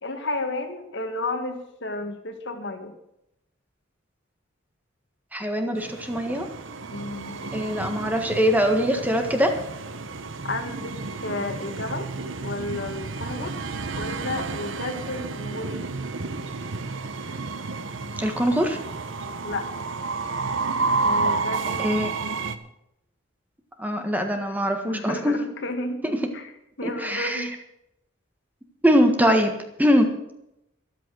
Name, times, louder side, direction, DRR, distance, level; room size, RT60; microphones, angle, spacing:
voice 1, 0.0-2.9 6.9-7.4 10.4-12.1 12.4-13.6 14.0-15.8 19.4-19.7 21.0-22.5 24.8-26.0 26.3-26.5 26.8-27.5, left 2 dB, 60° left, 6 dB, 2.0 m, -32 dB
voice 2, 5.3-6.5 7.5-9.5 18.2-18.8 21.8-22.1 23.8-25.4 26.0-26.2 26.8-27.5 28.8-30.1, equal, 10° right, 5 dB, 1.5 m, -22 dB
Train, 5.8-22.6, right 3 dB, 70° right, 1.0 m, -31 dB
14.0 x 12.0 x 6.4 m, 0.82 s
head